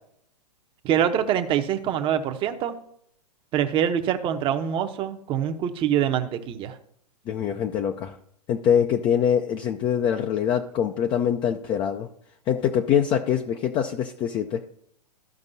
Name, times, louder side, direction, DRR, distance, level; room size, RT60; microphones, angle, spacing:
voice 1, 0.8-2.7 3.5-6.8, right 9 dB, 25° right, 7 dB, 0.8 m, -24 dB
voice 2, 7.3-8.2 8.5-12.1 12.5-14.6, left 8 dB, 25° left, 5 dB, 0.5 m, -24 dB
14.5 x 5.2 x 2.7 m, 0.69 s
figure-of-eight pair, 115°, 21 cm